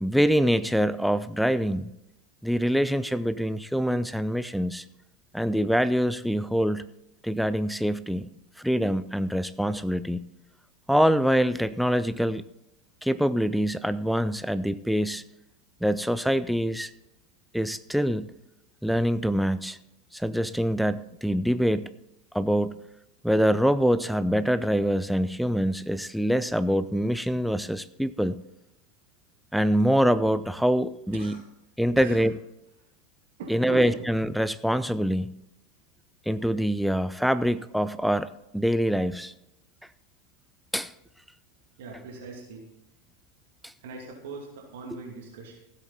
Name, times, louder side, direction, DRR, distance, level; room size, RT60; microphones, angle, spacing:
voice 1, 0.0-1.9 2.4-4.8 5.3-6.9 7.2-8.3 8.6-10.3 10.9-12.4 13.0-15.2 15.8-16.9 17.5-18.3 18.8-19.8 20.1-21.9 22.3-22.8 23.2-28.4 29.5-31.4 31.8-32.3 33.5-35.3 36.3-39.3 40.7-40.9, equal, ahead, 14 dB, 0.5 m, -25 dB
voice 2, 31.1-31.4 32.0-32.2 32.8-32.9 33.4-33.9 41.8-42.7 43.8-45.6, right 3 dB, 65° right, 0 dB, 2.6 m, -40 dB
15.5 x 8.5 x 4.1 m, 0.87 s
figure-of-eight pair, 85°, 0 cm